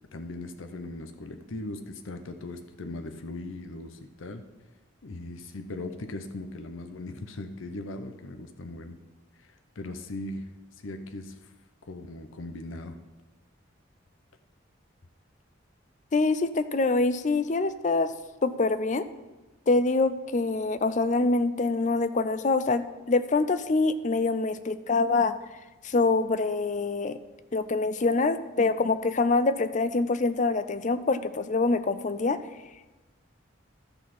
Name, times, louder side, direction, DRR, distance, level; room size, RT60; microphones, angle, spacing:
voice 1, 0.1-4.4 5.0-8.9 9.8-10.4 10.8-11.4 11.8-13.0, left 2 dB, 90° left, 7 dB, 0.7 m, -39 dB
voice 2, 16.1-18.1 18.4-19.0 19.7-25.3 25.8-27.2 27.5-32.4, left 3 dB, 40° left, 13 dB, 0.5 m, -25 dB
12.0 x 4.2 x 7.4 m, 1.1 s
head